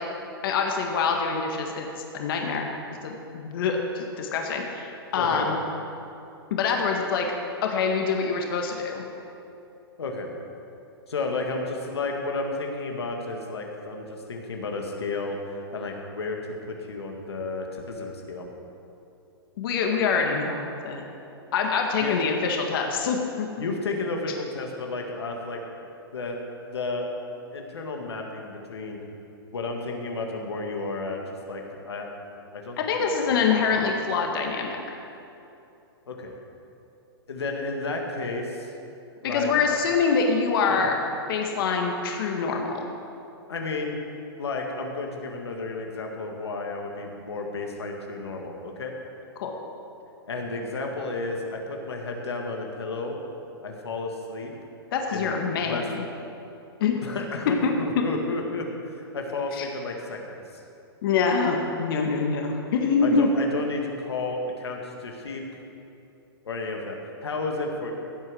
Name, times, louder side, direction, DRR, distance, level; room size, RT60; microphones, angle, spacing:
voice 1, 0.4-1.9 2.1-2.7 3.0-5.6 6.5-7.3 7.6-9.0 19.6-21.0 21.5-23.5 32.8-34.7 39.2-40.9 41.3-42.9 49.4-49.5 54.9-55.8 56.8-57.0 57.6-57.7 59.6-59.7 61.0-63.3, left 5 dB, 60° left, 2 dB, 1.8 m, -25 dB
voice 2, 5.2-5.5 10.0-10.3 11.1-16.4 16.7-18.5 22.0-22.2 23.6-25.6 26.1-26.4 26.7-27.1 27.5-29.0 29.5-31.2 31.5-32.2 32.5-33.1 33.4-33.8 36.1-36.4 37.3-38.7 39.2-39.8 40.7-40.9 43.5-44.0 44.4-48.9 50.3-53.2 53.6-54.5 55.1-55.9 57.0-60.4 63.0-65.4 66.4-67.9, left 3 dB, 85° left, 1 dB, 1.9 m, -32 dB
16.0 x 8.0 x 6.3 m, 2.8 s
hypercardioid pair, 125°, 13 cm